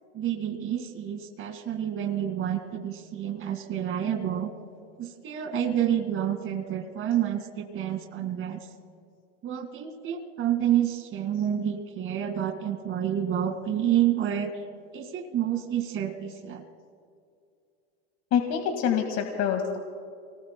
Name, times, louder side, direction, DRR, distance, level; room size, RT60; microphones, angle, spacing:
voice 1, 0.1-4.5 5.0-8.7 9.4-14.5 14.9-16.6, right 10 dB, 35° right, 6 dB, 2.1 m, -29 dB
voice 2, 18.3-19.8, left 8 dB, 45° left, 4 dB, 1.9 m, -26 dB
29.0 x 20.0 x 2.2 m, 2.4 s
supercardioid pair, 115°, 35 cm